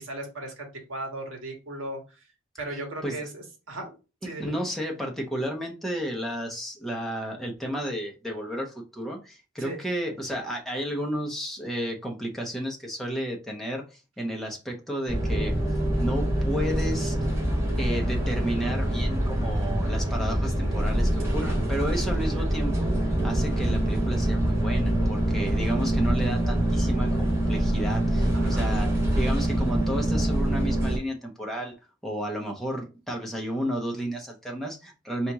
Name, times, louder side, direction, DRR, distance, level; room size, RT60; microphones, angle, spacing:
voice 1, 0.0-2.0 2.6-3.9 4.2-4.5 9.6-9.8 21.4-21.6 22.4-22.5 28.3-28.7, right 1 dB, 75° right, 1 dB, 1.6 m, -37 dB
voice 2, 4.4-15.5 16.0-17.3 17.8-28.9 29.2-31.7 32.0-35.3, equal, ahead, 0 dB, 0.9 m, -32 dB
sound 1, 15.1-31.0, right 1 dB, 15° right, 1.7 m, -25 dB
4.2 x 3.0 x 3.5 m, 0.31 s
head